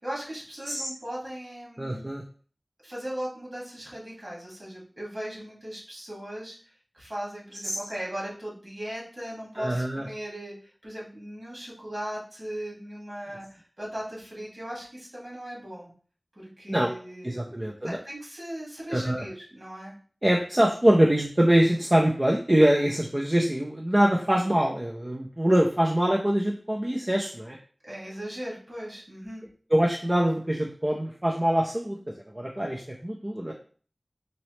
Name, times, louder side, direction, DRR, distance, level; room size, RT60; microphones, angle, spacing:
voice 1, 0.0-2.1 2.8-6.5 6.9-15.9 16.4-19.9 27.8-29.4, right 1 dB, 55° right, -5 dB, 2.1 m, -38 dB
voice 2, 1.8-2.2 9.6-10.1 16.7-16.9 17.2-18.0 18.9-19.2 20.2-27.6 29.7-32.0 32.3-33.5, right 1 dB, 30° right, -1 dB, 0.5 m, -24 dB
4.0 x 3.0 x 3.1 m, 0.43 s
wide cardioid pair, 50°, 0 cm